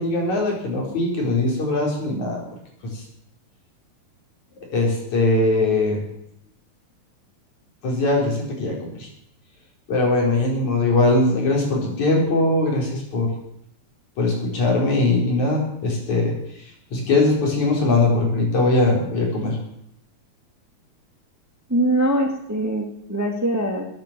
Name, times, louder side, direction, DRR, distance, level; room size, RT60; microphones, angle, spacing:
voice 1, 0.0-2.4 2.9-3.0 4.7-6.0 7.8-9.1 9.9-13.3 14.2-16.3 16.9-19.6, left 2 dB, 75° left, -1 dB, 5.8 m, -21 dB
voice 2, 21.7-23.9, right 1 dB, 5° right, 3 dB, 1.6 m, -22 dB
21.0 x 9.2 x 7.6 m, 0.75 s
omnidirectional pair, 3.3 m